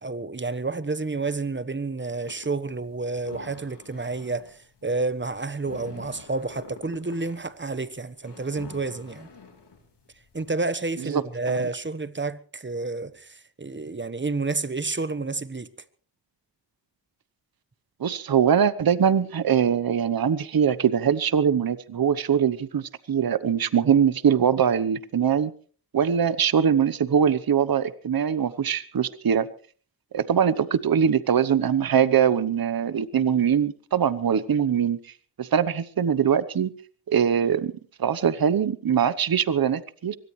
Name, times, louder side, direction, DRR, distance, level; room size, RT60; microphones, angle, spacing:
voice 1, 0.0-9.3 10.3-15.7, right 3 dB, 25° right, 1.2 m, -30 dB
sound 1, 2.2-10.5, left 4 dB, 75° left, 4.1 m, -47 dB
voice 2, 18.0-25.5 25.9-29.5 30.1-35.1 35.4-36.7 37.1-37.7 38.0-40.2, right 8 dB, 55° right, 1.0 m, -22 dB
23.5 x 18.0 x 3.2 m
cardioid pair, 50°, 42 cm